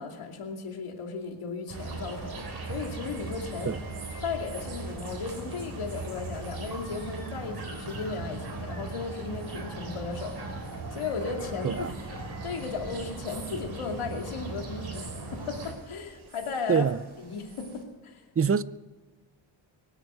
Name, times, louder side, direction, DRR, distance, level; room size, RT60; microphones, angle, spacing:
voice 1, 0.0-3.8 4.2-11.9 12.4-16.9 17.2-18.2, left 5 dB, 80° left, 2.7 m, -36 dB
sound 1, 1.7-15.7, right 3 dB, 50° right, 3.9 m, -38 dB
sound 2, 1.7-17.8, right 4 dB, 65° right, 3.7 m, -51 dB
voice 2, 16.7-17.0 18.4-18.6, right 6 dB, 30° right, 0.5 m, -24 dB
24.0 x 8.1 x 6.4 m
cardioid pair, 90°, 50 cm